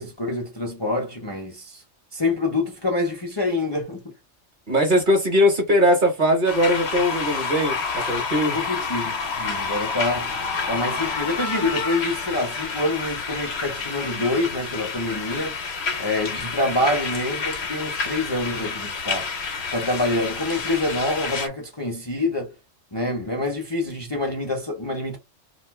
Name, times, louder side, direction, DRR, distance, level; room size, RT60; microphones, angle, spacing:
voice 1, 0.0-1.8 2.1-4.1 8.5-10.4 10.7-15.6 16.0-19.3 19.7-22.5 22.9-25.2, left 2 dB, 25° left, 0.7 m, -26 dB
voice 2, 4.7-8.6, equal, 45° right, 1.0 m, -20 dB
sound 1, 6.5-21.5, left 5 dB, 60° left, 1.0 m, -29 dB
2.6 x 2.4 x 3.5 m
omnidirectional pair, 1.3 m